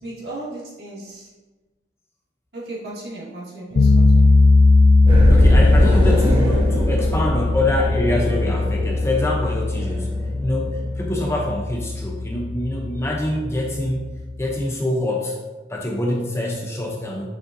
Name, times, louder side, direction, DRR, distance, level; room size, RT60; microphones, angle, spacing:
voice 1, 0.0-1.3 2.5-4.4, right 2 dB, 55° right, -7 dB, 2.3 m, -35 dB
sound 1, 3.8-14.6, left 3 dB, 85° left, 0.5 m, -18 dB
sound 2, 5.1-11.5, equal, 25° right, 1.1 m, -23 dB
voice 2, 5.3-14.1 14.4-15.4 15.7-17.3, left 1 dB, 15° left, 0 dB, 0.6 m, -25 dB
7.1 x 6.7 x 2.7 m, 1.2 s
head